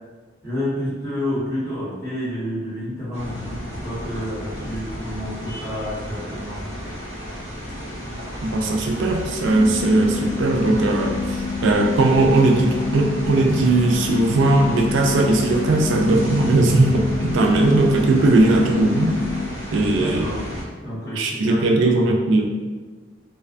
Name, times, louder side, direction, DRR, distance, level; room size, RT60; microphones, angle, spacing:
voice 1, 0.4-6.6 19.9-20.5 20.8-21.9, left 1 dB, 15° left, -13 dB, 1.4 m, -29 dB
sound 1, 3.1-20.6, equal, 35° right, 0.9 m, -32 dB
voice 2, 8.4-11.2 11.6-19.2 19.7-20.3 21.2-22.5, right 2 dB, 80° right, 2 dB, 0.4 m, -18 dB
sound 2, 9.5-19.5, left 5 dB, 55° left, 0.4 m, -28 dB
2.4 x 2.3 x 2.4 m, 1.4 s
head